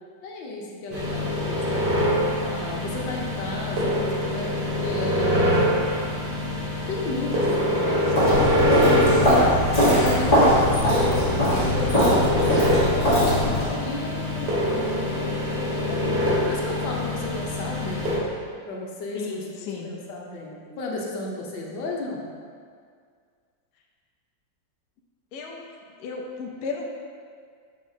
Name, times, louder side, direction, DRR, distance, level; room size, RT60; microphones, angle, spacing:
voice 1, 0.2-1.8 2.4-4.5 4.8-5.7 6.9-9.4 10.0-18.3 18.6-19.5 19.8-22.2, left 2 dB, 85° left, -2 dB, 1.6 m, -33 dB
sound 1, 0.9-18.2, left 1 dB, 65° right, 1.8 m, -25 dB
Walk footsteps, 8.1-13.7, equal, 25° left, 1.4 m, -21 dB
voice 2, 19.1-20.0 25.3-25.7 26.0-26.9, left 5 dB, 70° left, 0 dB, 1.1 m, -34 dB
6.6 x 5.4 x 2.7 m, 2.1 s
omnidirectional pair, 2.0 m